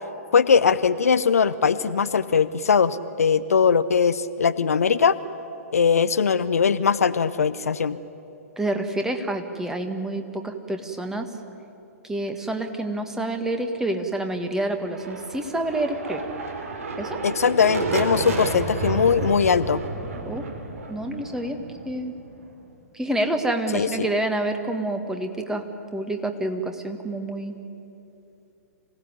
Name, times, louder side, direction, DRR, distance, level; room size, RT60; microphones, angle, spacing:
voice 1, 0.3-5.2 5.7-8.0 17.2-19.8 23.7-24.1, left 6 dB, 70° left, 13 dB, 0.8 m, -20 dB
voice 2, 8.6-11.3 12.0-16.2 17.0-17.2 20.3-20.4 20.9-21.6 21.8-22.1 22.9-25.6 25.9-27.5, right 1 dB, 5° right, 6 dB, 1.7 m, -28 dB
sound 1, 14.8-22.5, right 3 dB, 60° right, 3.3 m, -31 dB
26.5 x 17.0 x 9.7 m, 2.9 s
figure-of-eight pair, 115°, 8 cm